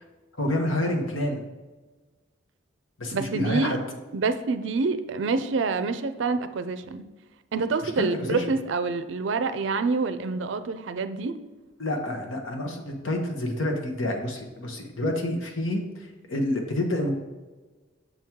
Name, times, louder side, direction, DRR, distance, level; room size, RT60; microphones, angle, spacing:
voice 1, 0.4-1.4 3.0-3.8 7.8-8.4 11.8-17.1, left 1 dB, 85° left, 3 dB, 1.1 m, -28 dB
voice 2, 3.1-3.8 4.1-7.0 7.5-11.3, right 4 dB, 70° right, 11 dB, 0.4 m, -27 dB
6.7 x 4.5 x 3.6 m, 1.2 s
head